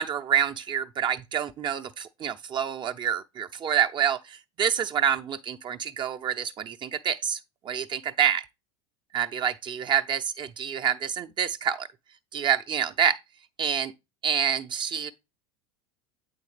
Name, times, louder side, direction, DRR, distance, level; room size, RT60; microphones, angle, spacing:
voice 1, 0.0-7.4 7.6-8.4 9.1-11.9 12.3-13.2 13.6-13.9 14.2-15.1, right 8 dB, 30° right, 0.5 m, -27 dB
8.2 x 4.2 x 3.2 m
hypercardioid pair, 90°, 15 cm